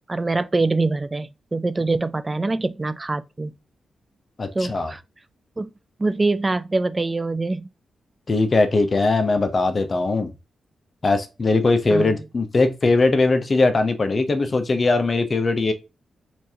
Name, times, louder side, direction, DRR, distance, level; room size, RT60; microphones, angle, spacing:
voice 1, 0.0-3.5 4.6-5.0 5.6-5.7 6.0-7.7 11.9-12.2, right 3 dB, 30° right, 0.3 m, -24 dB
voice 2, 4.4-4.9 8.3-10.3 11.0-15.7, left 3 dB, 45° left, 0.8 m, -20 dB
4.3 x 2.7 x 2.8 m
cardioid pair, 65°, 0 cm